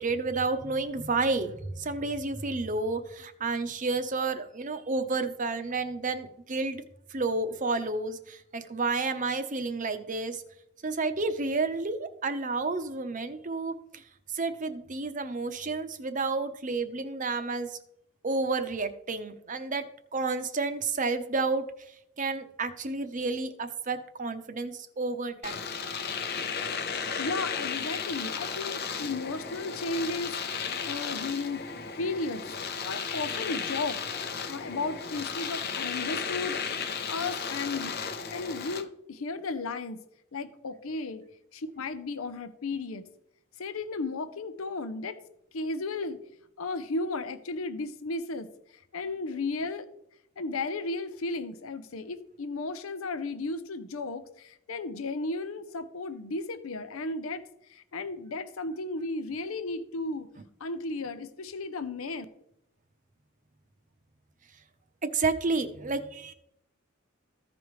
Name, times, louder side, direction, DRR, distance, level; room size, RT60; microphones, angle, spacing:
voice 1, 0.0-6.8 7.1-10.4 10.8-14.0 14.3-17.8 18.2-19.9 20.1-21.7 22.2-25.6 65.0-66.3, right 3 dB, 40° right, 9 dB, 0.8 m, -30 dB
Domestic sounds home sounds, 25.4-38.8, left 6 dB, 50° left, 0.7 m, -34 dB
voice 2, 26.9-31.7 32.0-32.5 32.8-34.0 34.5-36.6 37.1-38.0 38.3-40.0 40.3-41.2 41.5-43.0 43.6-45.2 45.5-46.2 46.6-48.5 48.7-49.9 50.4-60.3 60.6-62.3, left 3 dB, 85° left, 11 dB, 0.7 m, -34 dB
15.0 x 5.2 x 3.2 m, 0.76 s
head